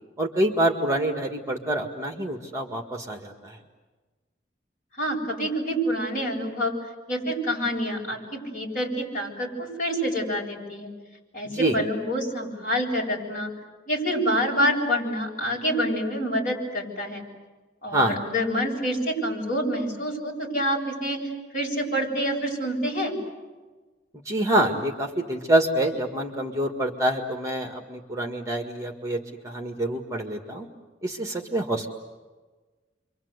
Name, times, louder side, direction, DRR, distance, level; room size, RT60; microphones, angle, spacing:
voice 1, 0.2-3.6 11.5-11.8 17.9-18.2 24.3-30.7 31.0-31.9, right 1 dB, 15° right, 3 dB, 1.8 m, -26 dB
voice 2, 5.0-6.7 7.1-10.9 11.3-13.5 13.9-17.2 17.8-23.2, equal, 45° left, -1 dB, 7.6 m, -27 dB
30.0 x 24.5 x 8.1 m, 1.3 s
head